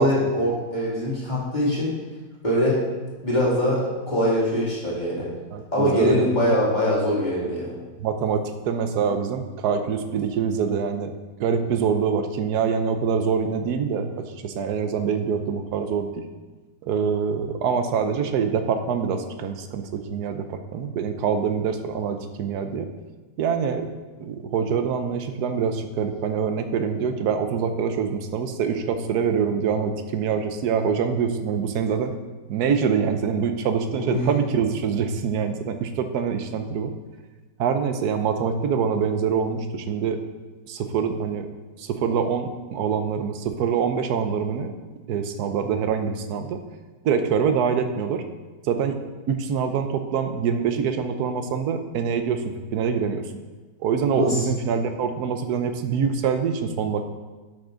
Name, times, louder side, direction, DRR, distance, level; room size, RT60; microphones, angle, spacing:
voice 1, 0.0-2.0 2.4-2.8 3.2-5.3 5.7-7.7 34.0-34.2 54.1-54.4, left 1 dB, 25° left, -7 dB, 2.7 m, -23 dB
voice 2, 5.5-6.5 8.0-11.1 11.4-16.2 16.8-22.9 23.4-23.9 24.2-32.1 32.5-36.9 37.6-40.2 40.7-41.5 41.8-44.7 45.1-46.6 47.0-48.2 48.6-49.0 49.3-53.3 53.8-57.0, right 6 dB, 65° right, 8 dB, 1.2 m, -25 dB
11.5 x 6.1 x 3.8 m, 1.3 s
omnidirectional pair, 2.0 m